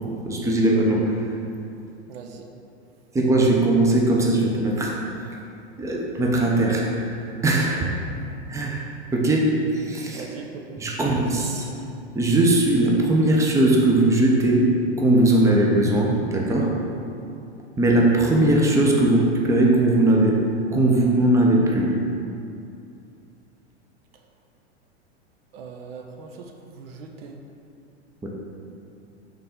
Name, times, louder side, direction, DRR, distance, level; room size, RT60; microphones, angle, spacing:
voice 1, 0.3-1.2 3.1-5.0 5.8-6.9 7.4-7.9 8.5-8.8 9.1-10.3 10.8-11.7 12.1-16.7 17.8-20.4 20.7-21.9 28.2-28.3, right 1 dB, 10° right, -2 dB, 0.7 m, -19 dB
voice 2, 2.1-2.5 10.1-10.8 11.2-11.4 25.5-27.4, right 4 dB, 60° right, 3 dB, 0.7 m, -40 dB
5.6 x 3.8 x 5.2 m, 2.6 s
hypercardioid pair, 100°, 33 cm